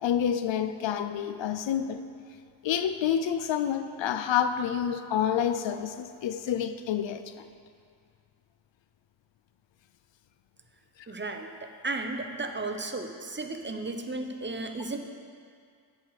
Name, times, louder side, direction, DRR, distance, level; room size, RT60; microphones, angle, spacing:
voice 1, 0.0-2.0 2.6-7.4, left 9 dB, 70° left, 10 dB, 0.6 m, -28 dB
voice 2, 11.1-15.0, right 2 dB, 25° right, 5 dB, 0.7 m, -34 dB
8.1 x 4.8 x 6.4 m, 2.2 s
cardioid pair, 55°, 47 cm